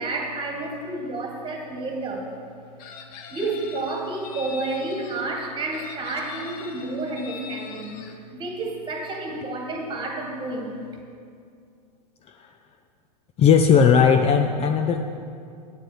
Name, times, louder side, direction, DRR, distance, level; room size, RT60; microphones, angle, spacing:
voice 1, 0.0-2.3 3.3-10.8, right 2 dB, 25° right, 1 dB, 2.1 m, -30 dB
Chicken rooster, 2.8-5.2 5.7-8.1, left 6 dB, 45° left, 1.0 m, -42 dB
voice 2, 13.4-15.0, left 6 dB, 30° left, 6 dB, 0.5 m, -17 dB
9.0 x 7.6 x 6.8 m, 2.4 s
hypercardioid pair, 100°, 21 cm